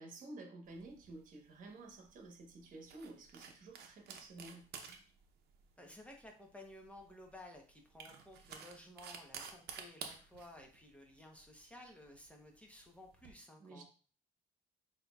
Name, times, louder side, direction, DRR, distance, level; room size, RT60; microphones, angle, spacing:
voice 1, 0.0-4.7 13.6-13.8, right 2 dB, 50° right, 3 dB, 1.0 m, -52 dB
sound 1, 0.7-13.3, right 6 dB, 70° right, 0.7 m, -53 dB
voice 2, 5.8-13.8, left 1 dB, 5° left, 1 dB, 0.8 m, -55 dB
5.9 x 2.8 x 2.3 m, 0.40 s
cardioid pair, 110°, 17 cm